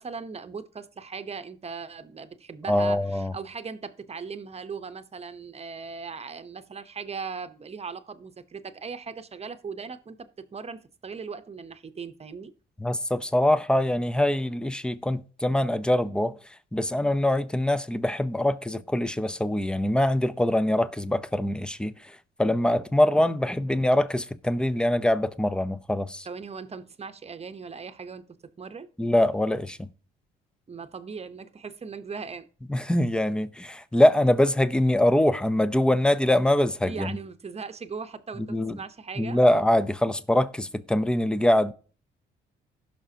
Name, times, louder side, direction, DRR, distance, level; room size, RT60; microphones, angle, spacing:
voice 1, 0.0-12.5 26.2-28.9 30.7-32.5 36.9-39.4, right 5 dB, 30° right, 0.9 m, -39 dB
voice 2, 2.7-3.3 12.8-16.4 16.7-26.3 29.0-29.9 32.7-37.2 38.4-38.8 39.2-41.7, left 1 dB, 5° left, 0.7 m, -23 dB
16.5 x 6.0 x 2.9 m
cardioid pair, 90°, 20 cm